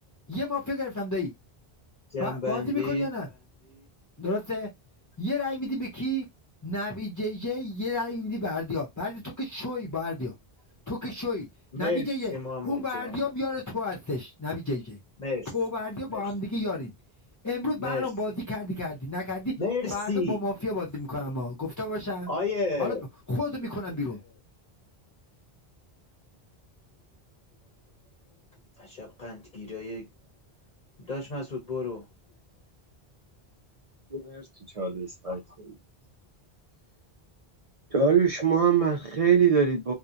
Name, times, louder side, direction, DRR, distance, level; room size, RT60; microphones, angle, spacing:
voice 1, 0.3-1.3 2.2-3.8 4.2-4.7 5.2-6.2 6.6-10.3 10.9-11.5 11.8-12.4 12.6-15.0 15.4-16.9 17.4-19.5 19.9-22.3 22.8-24.4, left 2 dB, 25° left, 0.4 m, -31 dB
voice 2, 2.1-3.1 11.7-13.2 15.2-15.5 16.1-16.2 17.8-18.1 19.6-20.4 22.3-23.0 28.8-30.1 31.1-32.0, left 3 dB, 50° left, 0.8 m, -32 dB
voice 3, 34.8-35.7 37.9-39.9, right 6 dB, 45° right, 0.5 m, -23 dB
2.8 x 2.1 x 2.4 m
omnidirectional pair, 1.0 m